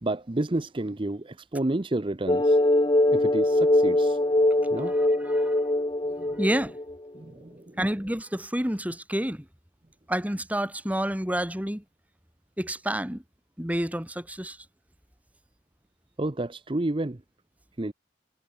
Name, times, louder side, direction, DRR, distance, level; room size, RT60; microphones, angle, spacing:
voice 1, 0.0-2.6 3.1-4.2 4.7-4.9 6.2-6.3 7.1-7.8 16.2-17.2 17.8-17.9, right 2 dB, 30° right, 0.7 m, -30 dB
sound 1, 2.3-6.9, left 1 dB, 25° left, 1.1 m, -22 dB
voice 2, 4.8-5.5 6.4-6.8 7.8-9.5 10.1-11.8 12.6-13.2 13.6-14.6, right 1 dB, 10° right, 2.7 m, -29 dB
head